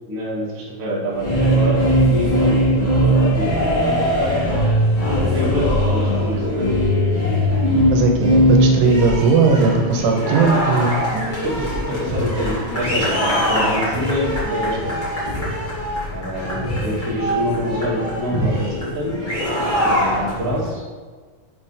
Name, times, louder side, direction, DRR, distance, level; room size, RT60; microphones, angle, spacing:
voice 1, 0.1-1.3 1.5-4.6 5.2-6.7 11.1-15.0 16.1-19.1 19.7-20.8, equal, 45° right, -7 dB, 1.1 m, -26 dB
sound 1, 1.1-20.7, equal, 70° left, 0.4 m, -20 dB
voice 2, 7.9-11.0, right 4 dB, 85° right, 2 dB, 2.9 m, -17 dB
7.0 x 3.4 x 5.6 m, 1.5 s
omnidirectional pair, 4.6 m